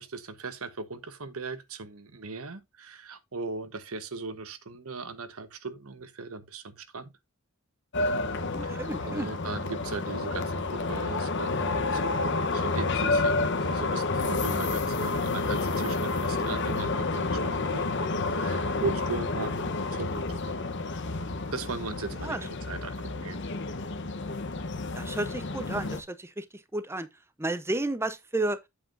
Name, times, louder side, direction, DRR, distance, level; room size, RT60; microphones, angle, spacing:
voice 1, 0.0-7.1 8.6-20.3 21.5-23.4, right 3 dB, 85° right, 1.1 m, -38 dB
sound 1, 7.9-26.0, left 3 dB, 55° left, 1.0 m, -30 dB
voice 2, 8.5-9.3 22.2-22.4 24.9-27.1 27.4-28.6, right 2 dB, 10° right, 0.7 m, -32 dB
8.4 x 7.5 x 2.6 m
head